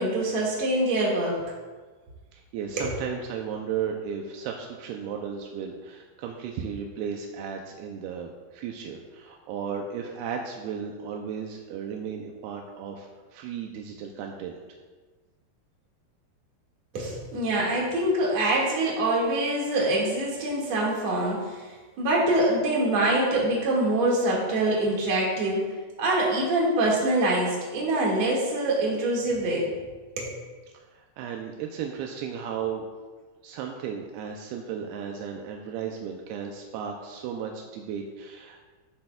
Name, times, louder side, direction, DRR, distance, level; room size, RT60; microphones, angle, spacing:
voice 1, 0.0-1.4 2.8-2.9 16.9-25.6 26.0-29.7 30.2-30.3, right 1 dB, 50° right, -4 dB, 2.6 m, -25 dB
voice 2, 2.3-14.6 30.7-32.8 33.4-38.6, right 7 dB, 85° right, 2 dB, 2.3 m, -35 dB
14.0 x 7.7 x 2.3 m, 1.4 s
omnidirectional pair, 5.1 m